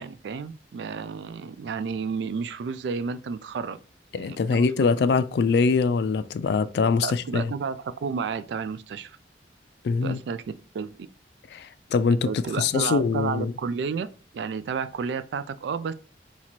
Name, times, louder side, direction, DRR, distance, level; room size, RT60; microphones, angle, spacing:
voice 1, 0.0-3.8 4.1-5.2 7.0-9.2 10.0-10.4 10.7-10.9 12.3-14.1 14.3-15.9, right 5 dB, 70° right, 0.3 m, -31 dB
voice 2, 4.1-7.5 9.8-10.2 11.5-13.5, left 5 dB, 65° left, 0.3 m, -23 dB
2.9 x 2.8 x 4.3 m
head